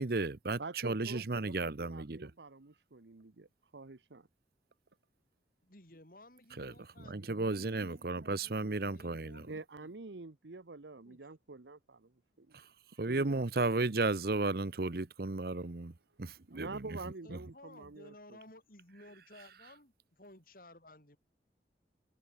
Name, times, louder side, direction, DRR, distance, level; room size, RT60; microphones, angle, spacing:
voice 1, 0.0-2.3 6.6-6.7 7.1-9.5 13.0-15.9 16.2-16.8, right 3 dB, 55° right, 0.9 m, -34 dB
voice 2, 0.6-3.5 3.7-4.3 9.5-12.1 12.4-12.6 13.1-14.0 16.5-18.4, right 3 dB, 85° right, 1.0 m, -47 dB
voice 3, 5.6-10.0 11.0-11.2 17.0-21.2, left 1 dB, 50° left, 6.0 m, -57 dB
head